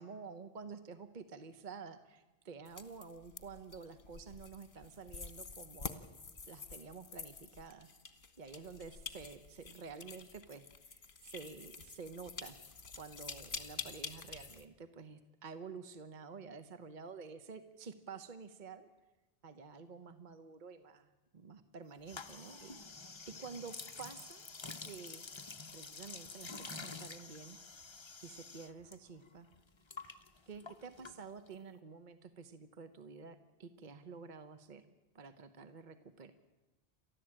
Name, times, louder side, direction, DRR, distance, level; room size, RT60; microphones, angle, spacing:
voice 1, 0.0-6.0 6.5-7.9 8.4-12.6 13.0-18.9 19.4-24.5 24.8-25.2 25.7-27.6 28.2-29.5 30.5-34.8 35.1-36.3, right 5 dB, 50° right, 10 dB, 1.1 m, -50 dB
sound 1, 2.6-14.6, left 5 dB, 55° left, 1.6 m, -48 dB
sound 2, 22.0-29.0 29.2-31.6, left 4 dB, 30° left, 0.8 m, -49 dB
29.5 x 13.5 x 8.8 m, 1.1 s
omnidirectional pair, 1.0 m